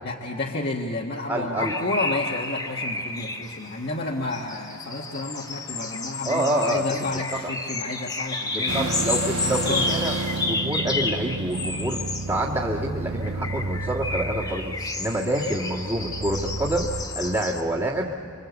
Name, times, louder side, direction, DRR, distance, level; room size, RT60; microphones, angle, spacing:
voice 1, 0.0-9.0 9.4-9.9, left 2 dB, 45° left, -2 dB, 1.5 m, -30 dB
voice 2, 1.3-1.7 6.3-7.0 8.5-12.0 12.3-18.1, right 1 dB, 20° right, -7 dB, 1.9 m, -27 dB
sound 1, 1.6-12.3 13.2-17.6, left 3 dB, 15° left, 1.3 m, -31 dB
sound 2, 8.7-17.0, right 3 dB, 70° right, 1.3 m, -32 dB
26.5 x 25.5 x 8.1 m, 2.6 s
head